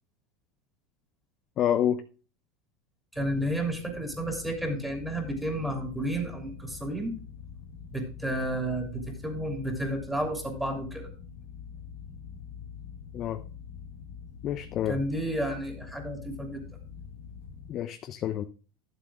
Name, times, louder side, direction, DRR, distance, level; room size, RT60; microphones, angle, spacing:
voice 1, 1.6-2.0 13.1-13.4 14.4-15.0 17.7-18.4, left 10 dB, 40° left, 0.7 m, -28 dB
sound 1, 3.1-17.7, left 7 dB, 90° left, 2.6 m, -45 dB
voice 2, 3.1-7.2 7.9-11.1 14.9-16.6, right 1 dB, 5° right, 3.2 m, -31 dB
11.5 x 7.6 x 3.6 m
supercardioid pair, 130°, 0 cm